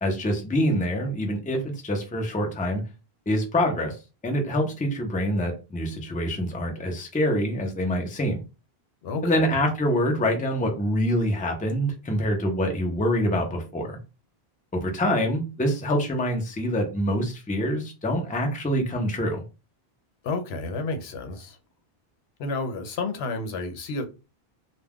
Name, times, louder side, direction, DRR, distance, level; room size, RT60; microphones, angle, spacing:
voice 1, 0.0-2.8 3.3-4.0 4.2-8.4 9.2-14.0 14.7-19.4, equal, 10° left, 0.4 m, -25 dB
voice 2, 9.0-9.5 20.2-21.6 22.4-24.1, left 3 dB, 85° left, 0.9 m, -31 dB
2.3 x 2.2 x 3.4 m
omnidirectional pair, 1.0 m